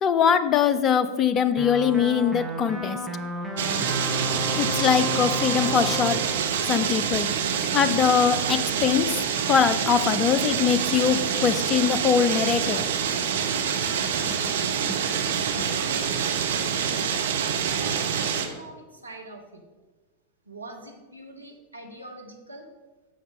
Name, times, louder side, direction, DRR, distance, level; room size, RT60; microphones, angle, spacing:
voice 1, 0.0-3.0 4.5-6.2 6.7-7.3 7.7-9.1 9.5-12.9, left 7 dB, 30° left, 12 dB, 0.5 m, -22 dB
sound 1, 1.6-7.7, equal, ahead, 1.1 m, -33 dB
sound 2, 3.6-18.5, right 7 dB, 60° right, 0.7 m, -26 dB
voice 2, 15.6-16.3 17.0-19.6 20.4-22.7, right 1 dB, 80° right, 2 dB, 1.1 m, -44 dB
8.4 x 6.6 x 3.7 m, 1.2 s
figure-of-eight pair, 90°, 0 cm